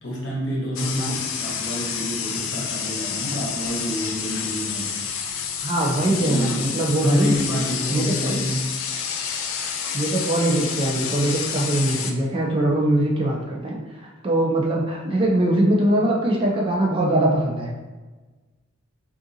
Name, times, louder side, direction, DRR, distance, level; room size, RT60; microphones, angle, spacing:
voice 1, 0.0-5.0 6.1-8.7, equal, 60° left, -4 dB, 0.9 m, -28 dB
sound 1, 0.8-12.1, left 7 dB, 80° left, 0.4 m, -29 dB
voice 2, 0.8-1.2 5.6-7.3 7.9-8.5 9.9-17.7, right 1 dB, 25° right, -2 dB, 0.4 m, -22 dB
3.6 x 2.4 x 2.6 m, 1.3 s
head